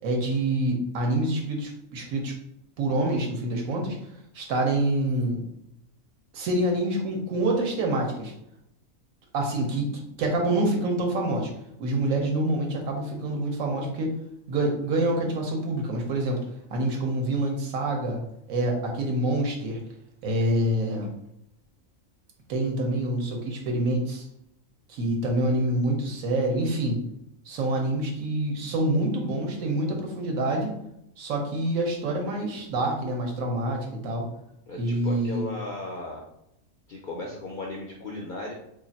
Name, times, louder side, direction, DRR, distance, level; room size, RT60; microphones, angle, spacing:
voice 1, 0.0-2.3 2.8-4.0 4.3-5.4 6.3-8.3 9.3-9.9 10.2-11.5 11.8-14.1 14.5-16.5 16.7-18.2 18.5-19.8 20.2-21.1 22.5-24.3 24.9-27.0 27.4-30.7 31.2-34.3 34.8-35.5, right 1 dB, 75° right, 1 dB, 1.2 m, -26 dB
voice 2, 34.7-36.2 36.9-38.5, left 1 dB, 80° left, -2 dB, 0.4 m, -36 dB
2.7 x 2.4 x 4.0 m, 0.80 s
omnidirectional pair, 1.5 m